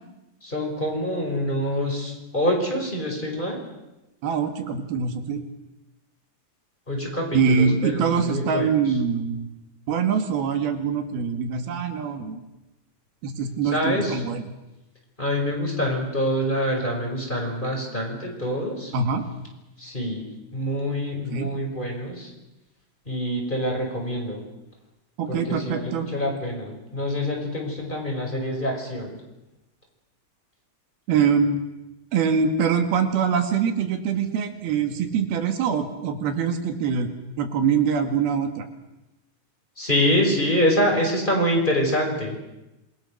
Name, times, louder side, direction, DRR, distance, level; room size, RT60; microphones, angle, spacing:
voice 1, 0.4-3.6 6.9-8.7 13.7-14.1 15.2-18.9 19.8-20.2 20.5-22.3 23.1-24.4 25.3-29.1 39.8-42.4, equal, 10° left, 0 dB, 5.4 m, -25 dB
voice 2, 4.2-5.4 7.3-9.5 9.9-12.4 13.2-14.5 18.9-19.2 21.3-21.5 25.2-26.1 31.1-31.6 32.1-37.1 37.4-38.6, right 6 dB, 85° right, 6 dB, 3.8 m, -24 dB
27.5 x 23.0 x 6.5 m, 0.97 s
omnidirectional pair, 4.2 m